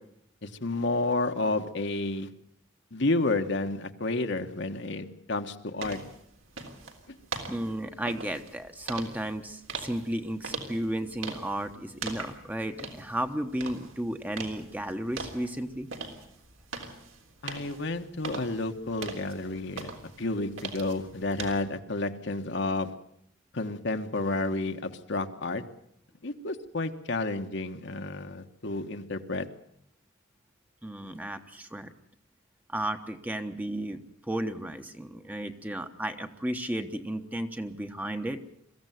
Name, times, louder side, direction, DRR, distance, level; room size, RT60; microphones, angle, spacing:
voice 1, 0.4-2.3 2.9-6.0 17.4-22.9 23.5-25.6 26.2-29.5, left 2 dB, 60° left, 6 dB, 1.4 m, -31 dB
sound 1, 5.8-21.6, right 4 dB, 80° right, 3.5 m, -42 dB
voice 2, 7.5-15.9 30.8-31.9 32.7-34.0 34.3-38.4, right 1 dB, 10° right, 7 dB, 1.1 m, -33 dB
22.5 x 15.0 x 9.3 m, 0.73 s
head